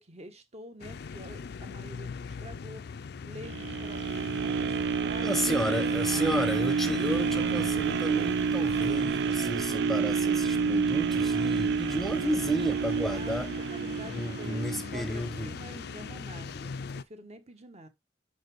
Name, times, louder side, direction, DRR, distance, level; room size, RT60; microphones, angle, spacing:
voice 1, 0.0-6.5 13.0-17.9, right 1 dB, 35° right, 1.1 m, -48 dB
sound 1, 0.8-17.0, left 5 dB, 60° left, 0.4 m, -40 dB
sound 2, 3.4-15.5 16.0-16.1, right 6 dB, 65° right, 0.4 m, -29 dB
voice 2, 5.2-13.5 14.0-15.5, right 1 dB, ahead, 0.8 m, -31 dB
6.0 x 4.1 x 4.7 m
head